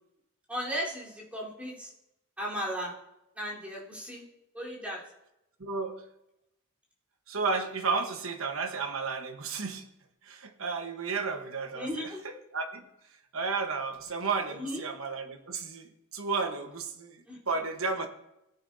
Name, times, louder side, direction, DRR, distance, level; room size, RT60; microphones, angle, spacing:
voice 1, 0.5-1.9 2.4-2.9 3.4-4.2 4.5-5.0 11.7-12.2 14.5-14.8 17.3-17.4, equal, 5° right, -7 dB, 3.8 m, -35 dB
voice 2, 5.6-6.0 7.3-9.9 10.2-12.8 13.3-17.2 17.5-18.1, right 4 dB, 85° right, 6 dB, 1.2 m, -33 dB
17.0 x 9.6 x 2.7 m, 0.86 s
head